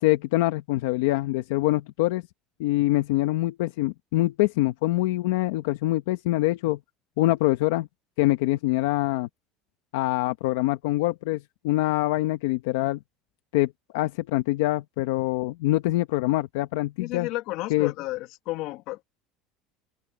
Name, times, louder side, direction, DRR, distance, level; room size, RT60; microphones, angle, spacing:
voice 1, 0.0-2.2 2.6-6.8 7.2-7.9 8.2-9.3 9.9-13.0 13.5-17.3 17.7-17.9, left 18 dB, 90° left, 1.0 m, -24 dB
voice 2, 17.0-19.0, left 18 dB, 65° left, 2.0 m, -32 dB
open air
cardioid pair, 140°, 0 cm